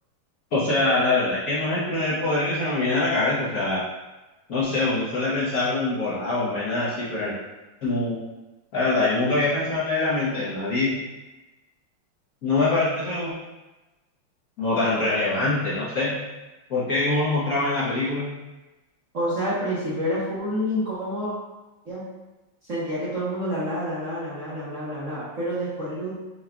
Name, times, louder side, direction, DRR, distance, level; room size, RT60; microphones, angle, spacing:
voice 1, 0.5-3.8 4.5-7.3 7.8-8.2 8.7-10.9 12.4-13.3 14.6-16.1 16.7-18.3, left 2 dB, 55° left, -8 dB, 1.1 m, -24 dB
voice 2, 19.1-21.3 21.8-22.0 22.6-26.2, equal, 50° right, -8 dB, 1.0 m, -28 dB
5.7 x 2.3 x 3.6 m, 1.1 s
omnidirectional pair, 2.3 m